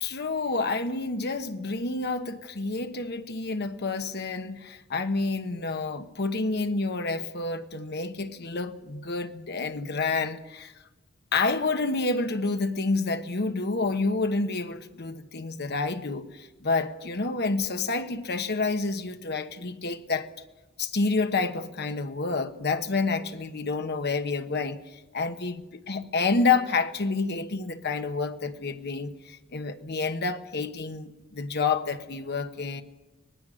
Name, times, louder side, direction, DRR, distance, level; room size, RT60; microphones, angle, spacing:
voice 1, 0.0-10.7 11.3-20.3 20.9-32.8, left 3 dB, 55° left, 1.2 m, -29 dB
24.5 x 19.0 x 6.4 m
head